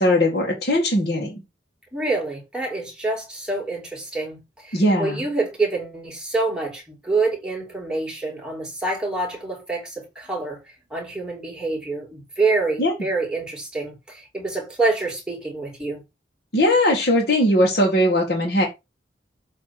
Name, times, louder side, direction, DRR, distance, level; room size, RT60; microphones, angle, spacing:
voice 1, 0.0-1.4 4.7-5.3 12.8-12.9 16.5-18.7, left 1 dB, 55° left, 1.9 m, -19 dB
voice 2, 1.9-10.6 10.9-16.0, right 3 dB, 5° right, 2.8 m, -26 dB
7.6 x 3.5 x 6.0 m
head